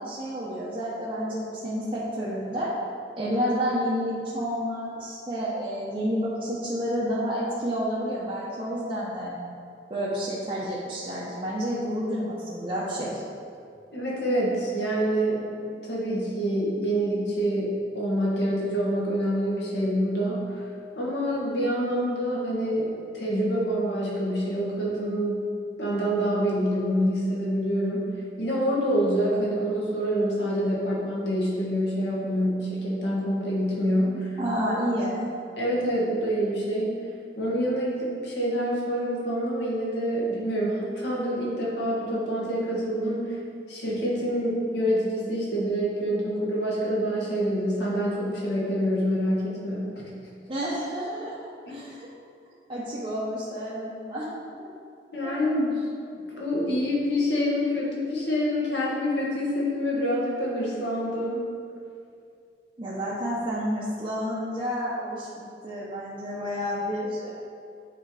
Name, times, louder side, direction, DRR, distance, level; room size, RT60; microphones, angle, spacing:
voice 1, 0.0-2.7 3.2-9.5 9.9-13.2 34.1-35.3 50.5-51.4 51.7-52.1 52.7-54.7 55.2-55.3 62.8-65.3 65.6-67.3, equal, 30° right, -8 dB, 0.9 m, -30 dB
voice 2, 13.9-15.4 15.9-20.7 20.9-25.4 25.8-28.1 28.4-34.3 35.6-36.9 37.4-43.4 43.7-50.0 51.7-51.8 55.1-55.7 56.1-61.4, equal, 70° left, -5 dB, 1.7 m, -26 dB
8.9 x 3.9 x 4.9 m, 2.4 s
head